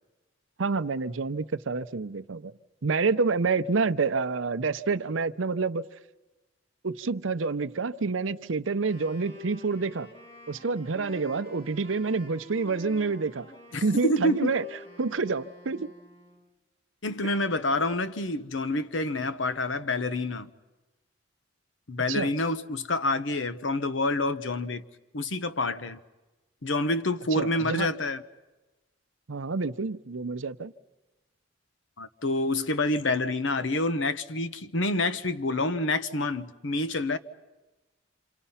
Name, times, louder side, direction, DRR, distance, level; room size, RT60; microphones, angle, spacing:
voice 1, 0.6-2.5 2.8-5.9 6.8-10.1 10.5-13.5 13.8-14.6 15.0-15.9 17.2-17.3 22.1-22.3 27.3-27.9 29.3-30.7, right 4 dB, 90° right, 0.7 m, -28 dB
Wind instrument woodwind instrument, 8.7-16.5, equal, 30° left, 6.2 m, -48 dB
voice 2, 13.7-14.5 17.0-20.5 21.9-24.8 25.1-26.0 26.6-28.2 32.0-37.2, left 2 dB, 75° left, 1.0 m, -27 dB
27.0 x 27.0 x 5.7 m
head